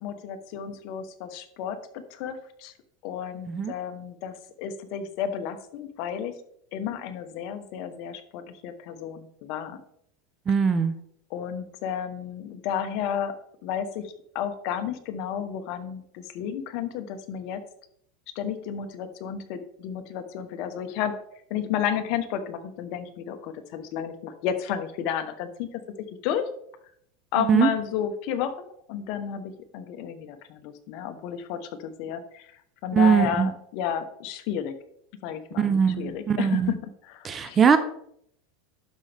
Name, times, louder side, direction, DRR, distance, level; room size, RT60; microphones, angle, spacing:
voice 1, 0.0-2.7 3.0-6.3 6.7-9.8 11.3-13.3 13.6-17.6 18.3-21.2 21.5-25.8 26.2-26.5 27.3-32.5 32.8-34.8 35.2-37.6, left 9 dB, 55° left, 8 dB, 1.1 m, -32 dB
voice 2, 10.5-10.9 27.5-27.7 32.9-33.5 35.6-36.7 37.2-37.8, right 6 dB, 25° right, 11 dB, 0.7 m, -21 dB
12.0 x 5.3 x 3.5 m, 0.69 s
supercardioid pair, 135°, 0 cm